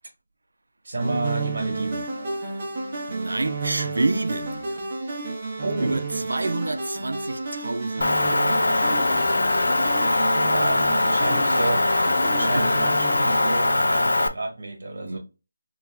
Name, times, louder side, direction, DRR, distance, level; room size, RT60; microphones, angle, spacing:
voice 1, 0.8-2.0 5.6-6.0 10.4-12.0 12.3-15.2, right 2 dB, 45° right, 1.2 m, -30 dB
sound 1, 1.0-13.6, right 3 dB, 25° right, 0.7 m, -31 dB
voice 2, 3.1-4.7 5.8-9.3 12.5-12.7 15.0-15.2, right 2 dB, 80° right, 0.5 m, -29 dB
Motor vehicle (road) / Engine, 8.0-14.3, left 2 dB, 85° left, 0.4 m, -21 dB
3.2 x 2.4 x 3.2 m
figure-of-eight pair, 175°, 0 cm